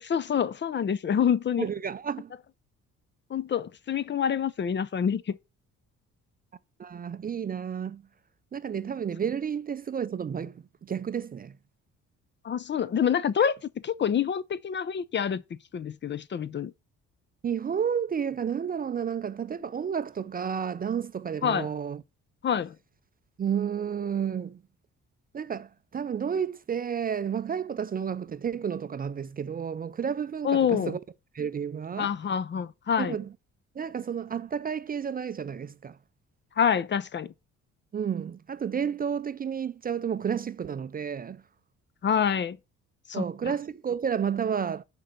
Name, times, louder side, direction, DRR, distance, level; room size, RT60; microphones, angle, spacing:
voice 1, 0.0-1.7 3.3-5.4 12.4-13.6 13.8-15.4 15.7-16.7 21.4-21.7 22.4-22.7 30.4-30.9 32.0-33.2 36.6-37.3 42.0-42.6 43.1-43.5, left 8 dB, 40° left, 0.5 m, -27 dB
voice 2, 1.6-2.3 6.8-8.0 8.5-11.5 17.4-22.0 23.4-24.6 25.3-31.0 31.3-32.1 33.0-33.3 33.8-36.0 37.9-41.4 43.1-44.8, right 7 dB, 30° right, 0.4 m, -31 dB
6.4 x 4.5 x 6.7 m
cardioid pair, 90°, 30 cm